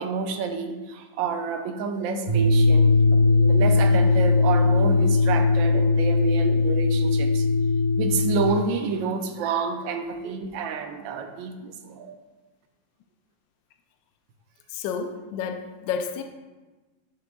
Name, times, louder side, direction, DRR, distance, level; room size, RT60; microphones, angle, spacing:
voice 1, 0.0-7.5 8.0-12.1, right 5 dB, 75° right, 6 dB, 1.4 m, -29 dB
sound 1, 2.3-8.5, left 3 dB, 35° right, 0.9 m, -19 dB
voice 2, 14.7-16.2, left 6 dB, 75° left, 6 dB, 1.2 m, -30 dB
11.0 x 5.2 x 2.3 m, 1.2 s
omnidirectional pair, 2.1 m